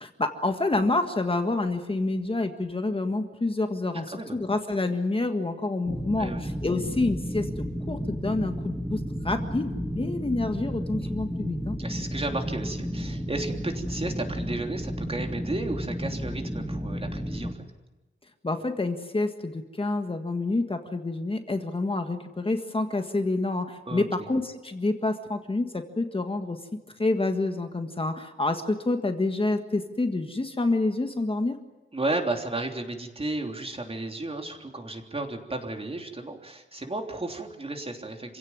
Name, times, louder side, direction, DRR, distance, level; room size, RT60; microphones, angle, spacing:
voice 1, 0.0-11.8 18.4-26.6 27.0-31.6, left 2 dB, 25° left, 6 dB, 1.7 m, -28 dB
sound 1, 5.9-17.5, equal, ahead, 2.3 m, -32 dB
voice 2, 11.8-17.5 23.9-24.1 31.9-38.4, right 2 dB, 30° right, 3 dB, 3.3 m, -33 dB
27.0 x 17.0 x 9.6 m, 1.1 s
wide cardioid pair, 145°, 21 cm